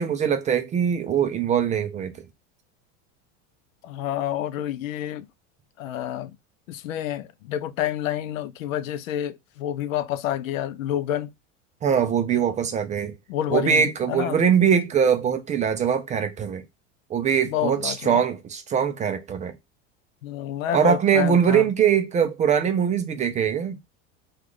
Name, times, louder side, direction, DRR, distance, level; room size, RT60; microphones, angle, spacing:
voice 1, 0.0-2.1 11.8-13.1 13.5-16.6 17.1-19.5 20.7-23.8, right 7 dB, 20° right, 0.3 m, -22 dB
voice 2, 3.8-5.3 5.8-6.4 6.7-11.3 13.3-14.4 17.4-18.2 20.2-21.7, left 11 dB, 90° left, 0.5 m, -29 dB
3.0 x 2.4 x 3.6 m
supercardioid pair, 115°, 39 cm